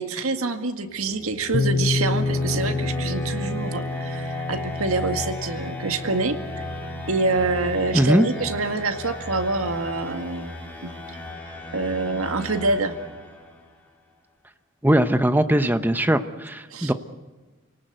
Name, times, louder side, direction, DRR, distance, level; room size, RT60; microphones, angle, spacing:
voice 1, 0.0-6.7 7.1-10.6 10.8-10.9 11.7-13.0 16.7-16.9, right 3 dB, 85° right, 7 dB, 2.0 m, -26 dB
sound 1, 0.8-13.7, left 1 dB, 5° left, 3.7 m, -35 dB
sound 2, 1.5-9.2, left 3 dB, 50° left, 0.7 m, -30 dB
voice 2, 7.9-8.3 14.8-16.9, right 1 dB, 10° right, 10 dB, 0.9 m, -20 dB
28.0 x 18.5 x 8.0 m, 1.3 s
head